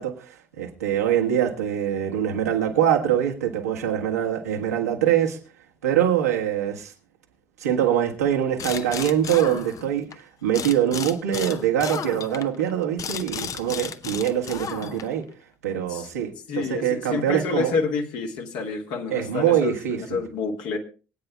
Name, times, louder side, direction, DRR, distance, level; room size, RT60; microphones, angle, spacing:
voice 1, 0.0-5.4 5.8-6.9 7.6-15.3 15.6-17.7 19.1-20.2, right 10 dB, 80° right, 1.5 m, -24 dB
sound 1, 8.6-10.2 10.5-15.2, left 7 dB, 45° left, 0.7 m, -34 dB
voice 2, 16.5-20.8, left 4 dB, 60° left, 1.8 m, -28 dB
24.5 x 8.9 x 2.3 m
figure-of-eight pair, 55°, 8 cm